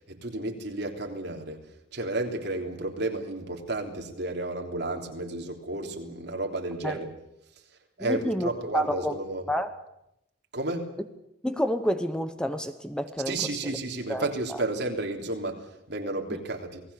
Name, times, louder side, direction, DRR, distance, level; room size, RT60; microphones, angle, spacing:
voice 1, 0.0-1.6 1.9-7.1 8.0-9.5 10.5-10.9 13.3-16.8, right 2 dB, 65° right, 2 dB, 3.4 m, -32 dB
voice 2, 8.0-9.2 9.5-9.7 11.4-13.4 13.6-13.8 14.1-14.6 16.3-16.4, equal, 5° left, 9 dB, 1.0 m, -29 dB
28.5 x 19.0 x 7.0 m, 0.84 s
head